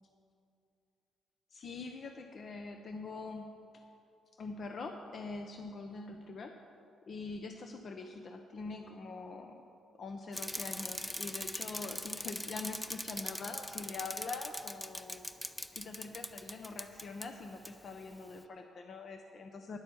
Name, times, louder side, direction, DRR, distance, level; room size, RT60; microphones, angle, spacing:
voice 1, 1.5-3.8 4.4-6.6 7.1-9.6 10.0-15.3 15.5-19.8, left 3 dB, 50° left, 5 dB, 0.7 m, -44 dB
Bicycle, 10.3-17.3 17.6-17.7, left 1 dB, 5° left, 0.5 m, -41 dB
10.5 x 9.0 x 7.0 m, 2.6 s
cardioid pair, 90°, 0 cm